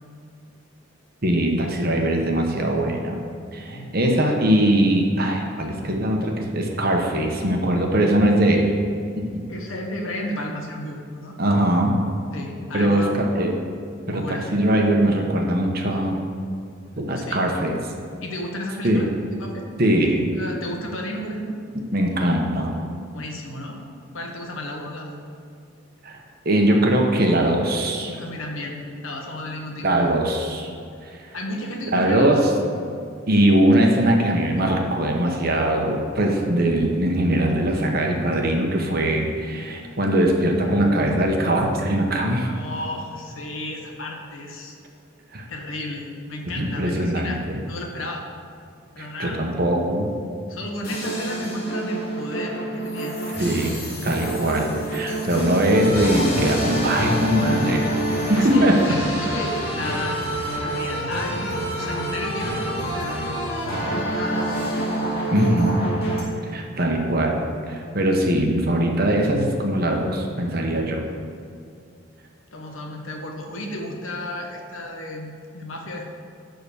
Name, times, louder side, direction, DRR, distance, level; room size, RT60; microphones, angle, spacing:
voice 1, 1.2-3.2 3.5-8.7 9.2-9.3 11.4-12.0 12.7-13.5 14.1-16.2 17.0-17.8 18.8-19.0 19.8-20.3 21.9-22.8 26.0-26.2 26.4-28.2 29.8-30.7 31.0-31.2 31.9-32.5 33.3-42.5 45.3-45.4 46.5-47.6 49.0-50.1 53.4-57.9 58.2-58.8 65.3-65.8 66.5-71.1, right 1 dB, 45° right, 2 dB, 1.0 m, -21 dB
voice 2, 9.5-11.4 12.3-13.2 14.1-14.4 17.1-17.4 18.2-19.6 20.3-21.6 23.1-23.8 24.1-25.2 28.2-29.9 31.3-32.5 33.3-33.5 42.4-44.7 45.5-48.2 48.9-49.4 50.5-53.2 54.1-54.3 58.3-60.3 60.6-63.2 63.8-64.5 72.5-76.1, left 1 dB, 70° left, 1 dB, 1.3 m, -33 dB
sound 1, 50.8-66.2, right 1 dB, 45° left, 2.3 m, -27 dB
11.5 x 3.9 x 6.9 m, 2.4 s
head